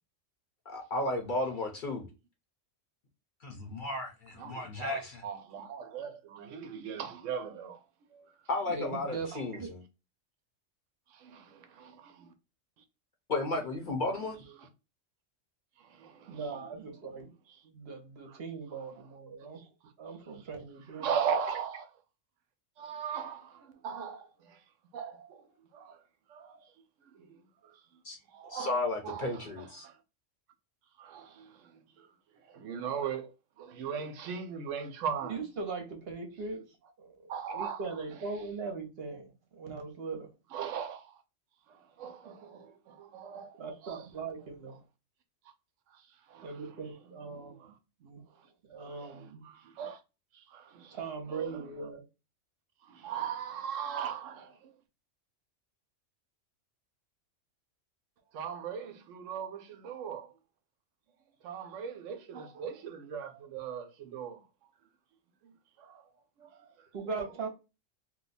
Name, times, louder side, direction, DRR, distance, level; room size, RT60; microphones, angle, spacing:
voice 1, 0.7-2.1 3.4-5.2 8.5-9.8 13.3-14.4 28.0-28.2 28.4-29.9, left 2 dB, 45° left, 0.8 m, -34 dB
voice 2, 4.4-7.8 8.1-8.3 11.1-12.3 14.6-14.7 15.8-16.4 18.3-18.4 19.6-19.7 20.9-21.8 22.8-24.6 24.9-25.4 25.7-26.0 26.3-26.7 27.1-27.8 28.3-30.0 31.0-31.7 32.0-32.1 32.5-35.4 37.3-37.8 40.5-41.2 41.7-44.0 45.9-46.0 46.3-46.8 47.3-47.7 48.9-50.0 50.3-51.0 51.3-51.6 52.9-54.7 58.3-60.3 61.4-64.4 65.4-65.5 65.8-66.0 66.4-66.7, right 7 dB, 80° right, 0.9 m, -39 dB
voice 3, 8.7-9.7 16.3-17.3 17.6-19.6 20.0-21.1 21.5-21.6 35.3-36.6 37.0-40.3 43.6-44.8 46.4-47.5 48.0-48.2 48.6-49.5 50.9-52.0 66.9-67.5, right 4 dB, 55° right, 0.9 m, -40 dB
2.7 x 2.2 x 3.9 m
omnidirectional pair, 1.3 m